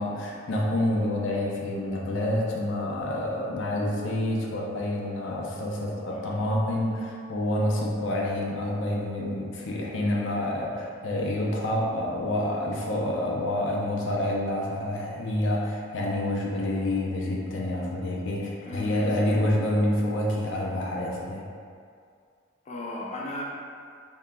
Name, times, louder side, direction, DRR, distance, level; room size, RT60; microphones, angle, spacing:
voice 1, 0.0-21.4, left 1 dB, 90° left, -3 dB, 0.5 m, -28 dB
voice 2, 6.1-6.4 18.6-19.5 22.7-23.4, left 1 dB, 35° left, -3 dB, 0.3 m, -37 dB
3.5 x 2.8 x 2.2 m, 2.2 s
head